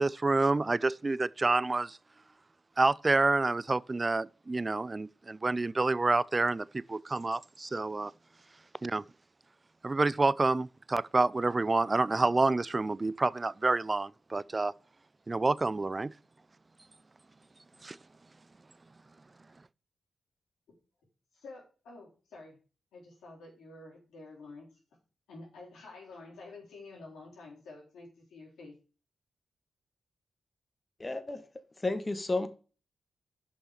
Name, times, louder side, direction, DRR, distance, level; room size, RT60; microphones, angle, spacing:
voice 1, 0.0-2.0 2.8-8.1 8.8-9.0 9.8-14.7 15.3-16.1 17.8-18.0, right 3 dB, 35° right, 0.4 m, -28 dB
voice 2, 21.3-22.6 22.9-24.7 25.3-28.7, left 3 dB, 90° left, 3.7 m, -49 dB
voice 3, 31.0-31.5 31.8-32.5, left 2 dB, 30° left, 1.4 m, -32 dB
7.1 x 5.5 x 6.4 m
supercardioid pair, 45°, 0 cm